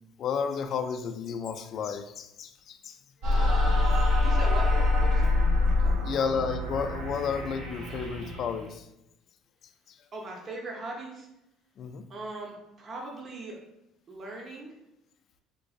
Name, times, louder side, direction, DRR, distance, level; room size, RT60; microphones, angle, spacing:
voice 1, 0.2-3.0 6.0-8.9 9.9-10.0 11.8-12.1, left 6 dB, 55° left, 8 dB, 0.3 m, -32 dB
sound 1, 3.2-8.7, left 2 dB, 75° right, 1.0 m, -25 dB
voice 2, 4.2-4.7 5.0-5.3 5.8-6.2 10.1-11.3 12.1-13.6 14.1-14.7, right 2 dB, 40° right, -1 dB, 0.7 m, -39 dB
3.7 x 2.5 x 2.4 m, 0.87 s
supercardioid pair, 90°, 0 cm